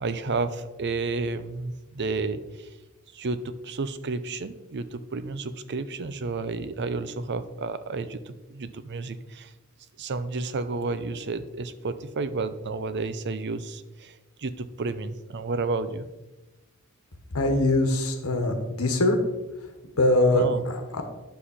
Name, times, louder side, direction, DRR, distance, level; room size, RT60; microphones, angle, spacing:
voice 1, 0.0-2.7 3.1-9.5 10.0-14.1 14.4-16.1 20.3-20.6, right 3 dB, 50° right, 12 dB, 0.6 m, -31 dB
voice 2, 17.3-19.2 20.0-21.0, left 1 dB, 75° left, 5 dB, 1.4 m, -22 dB
10.0 x 7.2 x 4.3 m, 1.1 s
head